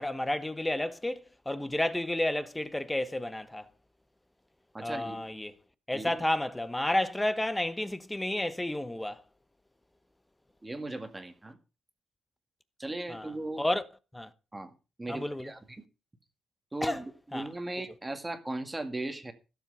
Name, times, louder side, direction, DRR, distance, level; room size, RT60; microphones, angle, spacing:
voice 1, 0.0-3.7 4.8-5.5 5.9-9.2 13.1-13.9 14.1-14.3 15.1-15.5 16.8-17.0 17.3-17.5, left 1 dB, 10° left, 1.0 m, -31 dB
voice 2, 4.7-5.3 5.9-6.2 10.6-11.6 12.8-13.6 14.5-14.7 15.0-15.8 16.7-19.3, right 2 dB, 15° right, 2.0 m, -38 dB
16.0 x 7.6 x 5.5 m
wide cardioid pair, 150°, 0 cm